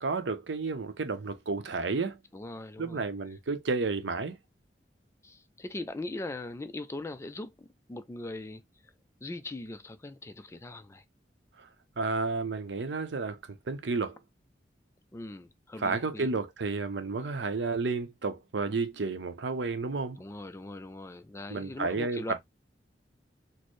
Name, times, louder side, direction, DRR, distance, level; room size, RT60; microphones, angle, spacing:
voice 1, 0.0-2.2 2.8-4.4 12.0-14.2 15.8-20.2 21.5-22.4, right 3 dB, 80° right, 0.6 m, -31 dB
voice 2, 2.3-3.0 5.2-8.6 9.2-11.0 15.1-16.3 20.2-22.4, left 2 dB, 15° left, 0.3 m, -40 dB
4.2 x 2.0 x 3.0 m
head